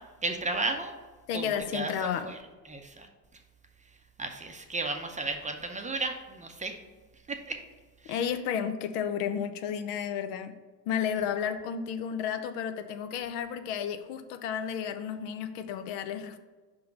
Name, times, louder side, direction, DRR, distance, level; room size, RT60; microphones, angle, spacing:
voice 1, 0.2-0.9 1.3-1.4 1.7-1.9 2.2-2.4 2.7-3.1 4.2-6.8 7.3-7.6 8.0-8.1, right 3 dB, 15° right, 4 dB, 0.6 m, -33 dB
voice 2, 1.3-2.3 8.1-10.5 10.9-16.4, left 8 dB, 70° left, 9 dB, 0.7 m, -32 dB
5.1 x 3.8 x 5.8 m, 1.3 s
hypercardioid pair, 75°, 49 cm